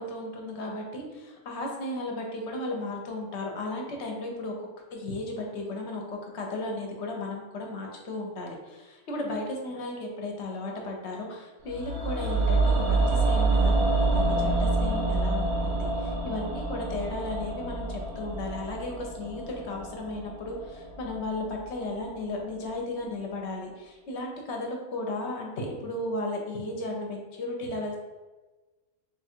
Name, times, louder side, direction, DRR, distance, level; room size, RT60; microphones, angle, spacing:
voice 1, 0.0-28.0, left 2 dB, 60° left, 1 dB, 1.0 m, -35 dB
sound 1, 11.7-21.8 22.1-22.2, right 3 dB, 60° right, 0.9 m, -27 dB
3.4 x 2.4 x 4.3 m, 1.2 s
omnidirectional pair, 1.3 m